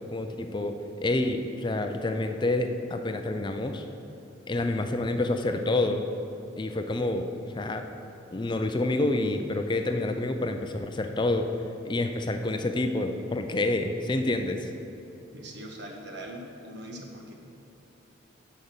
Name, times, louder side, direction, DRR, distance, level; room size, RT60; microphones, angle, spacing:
voice 1, 0.1-3.9 4.5-6.1 6.6-7.3 7.5-7.9 8.3-11.5 11.8-14.7, left 2 dB, 25° left, 6 dB, 0.4 m, -28 dB
voice 2, 15.3-17.3, right 1 dB, 60° right, 1 dB, 1.4 m, -41 dB
10.5 x 5.2 x 7.0 m, 2.9 s
head